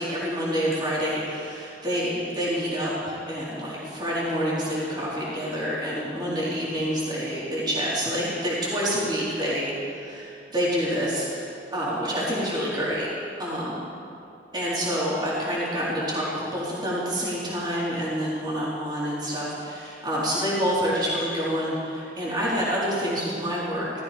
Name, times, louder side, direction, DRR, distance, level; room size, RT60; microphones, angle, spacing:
voice 1, 0.0-13.1 13.4-13.8 14.5-23.9, equal, 25° right, -8 dB, 4.0 m, -27 dB
17.5 x 14.0 x 5.2 m, 2.7 s
head